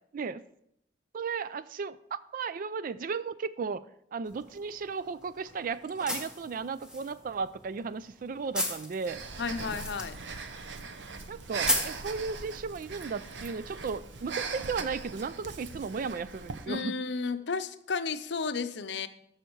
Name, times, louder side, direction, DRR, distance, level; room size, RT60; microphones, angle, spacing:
voice 1, 0.1-0.4 1.1-3.9 4.1-9.2 11.3-16.9, right 5 dB, 50° right, 15 dB, 0.4 m, -35 dB
sound 1, 4.3-12.8, left 1 dB, 5° right, 1.4 m, -38 dB
Breathing, 9.1-16.7, right 4 dB, 90° right, 0.9 m, -40 dB
voice 2, 9.4-10.2 16.7-19.1, left 4 dB, 70° left, 11 dB, 0.6 m, -33 dB
13.5 x 5.7 x 4.6 m, 0.74 s
head